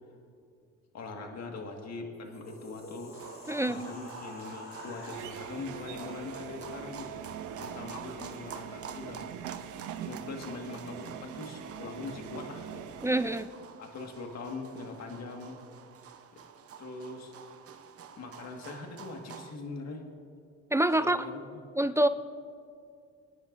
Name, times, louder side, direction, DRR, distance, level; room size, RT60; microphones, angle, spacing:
voice 1, 0.9-3.1 3.6-7.1 7.6-9.3 10.0-12.9 13.8-15.6 16.3-16.4 16.8-17.3 18.2-20.0 21.0-21.6, left 3 dB, 60° left, 2 dB, 1.7 m, -42 dB
sound 1, 2.1-6.7, left 2 dB, 45° left, 3.0 m, -48 dB
sound 2, 3.1-19.6, right 7 dB, 50° right, 0.8 m, -49 dB
voice 2, 3.5-3.8 13.0-13.5 20.7-21.2 21.8-22.1, right 1 dB, 10° right, 11 dB, 0.4 m, -25 dB
sound 3, 5.1-13.4, right 9 dB, 85° right, 0.7 m, -43 dB
24.5 x 10.0 x 2.6 m, 2.4 s
cardioid pair, 90°, 30 cm